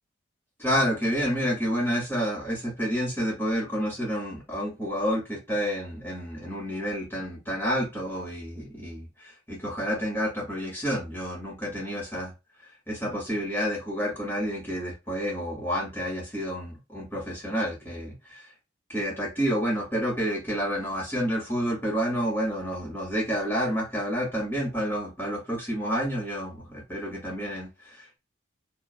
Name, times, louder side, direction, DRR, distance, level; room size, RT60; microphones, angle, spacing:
voice 1, 0.6-12.3 12.6-18.5 18.9-28.2, equal, 10° left, 1.9 m, -29 dB
4.8 x 3.1 x 2.3 m
head